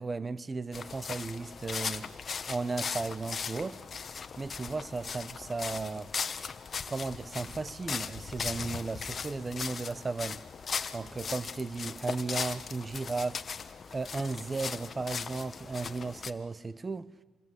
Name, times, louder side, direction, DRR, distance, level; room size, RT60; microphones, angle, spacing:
voice 1, 0.0-2.1 2.5-3.8 4.4-6.1 6.9-10.4 10.9-13.5 13.9-17.1, right 3 dB, 25° right, 0.9 m, -35 dB
sound 1, 0.7-16.3, left 6 dB, 45° left, 1.2 m, -38 dB
27.0 x 21.0 x 8.1 m
cardioid pair, 90°, 0 cm